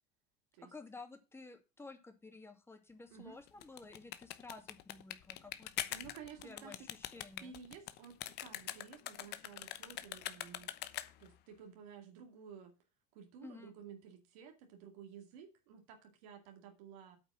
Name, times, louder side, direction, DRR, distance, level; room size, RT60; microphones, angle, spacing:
voice 1, 0.6-6.1 6.4-7.5 13.4-13.7, left 3 dB, 10° left, 2.5 m, -53 dB
sound 1, 3.5-11.4, left 14 dB, 60° left, 1.0 m, -44 dB
voice 2, 5.9-6.8 7.4-10.7 11.2-12.7 13.1-17.2, right 7 dB, 75° right, 2.3 m, -53 dB
8.7 x 5.4 x 7.6 m
supercardioid pair, 95°, 20 cm